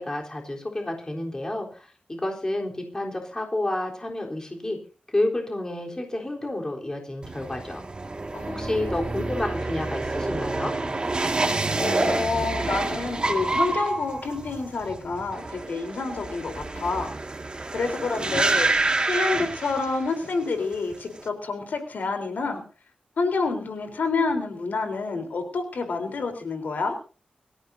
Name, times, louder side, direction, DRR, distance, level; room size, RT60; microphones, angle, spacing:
voice 1, 0.0-4.8 5.1-7.8 8.5-10.7, left 1 dB, 20° left, 0 dB, 3.8 m, -30 dB
sound 1, 7.2-20.3 20.6-21.2, right 2 dB, 30° right, 2.1 m, -28 dB
voice 2, 8.3-9.0 11.8-17.1 17.7-18.7 19.1-22.6 23.2-27.0, left 4 dB, 75° left, 5 dB, 3.9 m, -28 dB
24.5 x 15.0 x 2.8 m, 0.36 s
wide cardioid pair, 140°, 3 cm